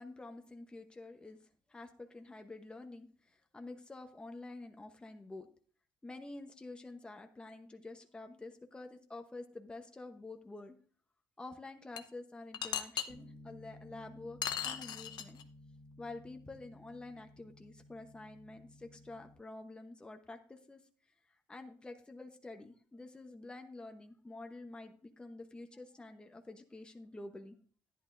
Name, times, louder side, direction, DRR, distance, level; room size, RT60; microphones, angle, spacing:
voice 1, 0.0-1.4 1.7-5.5 6.0-10.8 11.4-15.4 16.0-20.8 21.5-27.6, left 2 dB, 10° left, 5 dB, 1.0 m, -49 dB
sound 1, 12.0-12.1 12.5-13.0 14.4-15.4, left 9 dB, 60° left, 0.8 m, -36 dB
Bass guitar, 13.1-19.3, left 1 dB, 75° right, 1.8 m, -56 dB
10.5 x 10.5 x 2.6 m, 0.44 s
cardioid pair, 110°, 8 cm